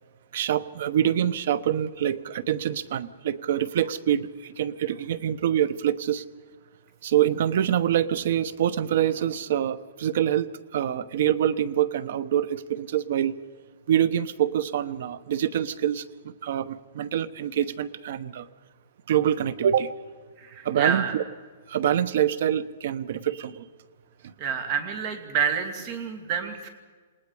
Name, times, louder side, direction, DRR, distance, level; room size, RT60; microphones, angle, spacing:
voice 1, 0.3-6.2 7.0-13.4 13.9-18.5 19.1-19.9 20.6-21.2 21.7-23.6 24.2-24.3, right 10 dB, 55° right, 17 dB, 1.0 m, -25 dB
voice 2, 20.4-21.1 24.4-26.7, right 7 dB, 30° right, 7 dB, 2.8 m, -28 dB
28.5 x 19.0 x 5.0 m, 1.5 s
hypercardioid pair, 165°, 0 cm